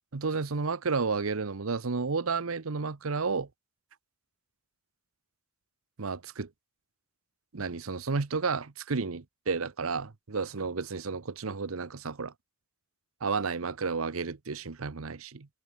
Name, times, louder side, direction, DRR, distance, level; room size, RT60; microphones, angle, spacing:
voice 1, 0.1-3.5 6.0-6.5 7.5-12.3 13.2-15.5, right 4 dB, 85° right, 0.9 m, -32 dB
head